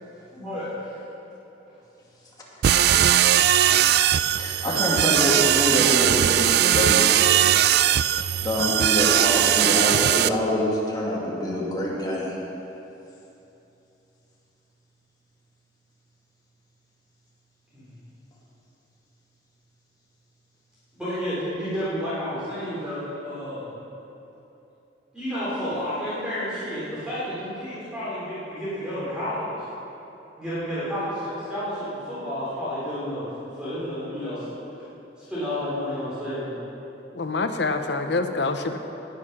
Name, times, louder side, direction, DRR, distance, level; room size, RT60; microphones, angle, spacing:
voice 1, 0.3-0.9 17.7-18.0 20.9-23.7 25.1-29.5 30.4-33.3 33.5-34.5 35.2-36.5, equal, 5° right, -12 dB, 3.5 m, -31 dB
sound 1, 2.6-10.3, right 11 dB, 60° right, 0.3 m, -19 dB
voice 2, 3.0-3.4 4.3-7.0 8.4-12.4, left 1 dB, 25° left, -5 dB, 2.5 m, -26 dB
voice 3, 37.1-38.8, left 3 dB, 70° left, 7 dB, 0.8 m, -26 dB
19.0 x 6.6 x 6.0 m, 3.0 s
head